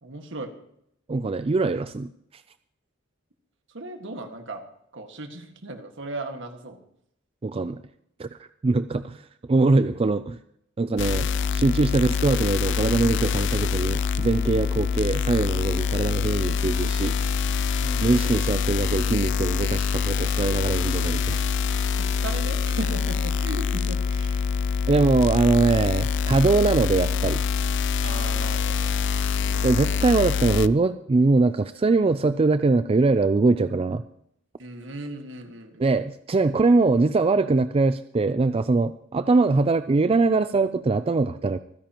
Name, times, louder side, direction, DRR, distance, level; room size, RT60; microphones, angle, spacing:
voice 1, 0.0-0.5 3.7-4.6 4.9-6.8 17.8-18.1 22.0-24.5 26.6-26.7 28.0-29.0 29.4-30.0 34.6-35.9, right 2 dB, 65° right, 5 dB, 1.8 m, -37 dB
voice 2, 1.1-2.4 7.4-7.8 8.2-10.4 10.8-17.2 18.0-21.4 24.9-27.4 29.6-34.0 35.8-41.6, right 3 dB, 30° right, 11 dB, 0.4 m, -22 dB
sound 1, 11.0-30.7, left 5 dB, 60° left, 0.5 m, -25 dB
25.5 x 10.0 x 3.0 m, 0.73 s
head